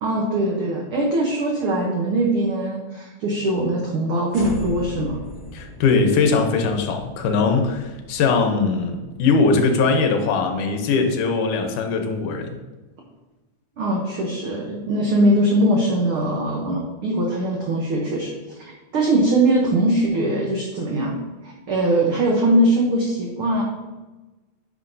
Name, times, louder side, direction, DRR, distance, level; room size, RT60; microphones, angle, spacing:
voice 1, 0.0-5.2 13.8-23.6, right 1 dB, 80° right, -1 dB, 1.2 m, -21 dB
sound 1, 4.3-10.6, left 1 dB, 20° right, 1.4 m, -39 dB
voice 2, 5.5-12.6, left 4 dB, 80° left, 5 dB, 2.3 m, -20 dB
9.6 x 5.7 x 2.6 m, 1.2 s
omnidirectional pair, 3.6 m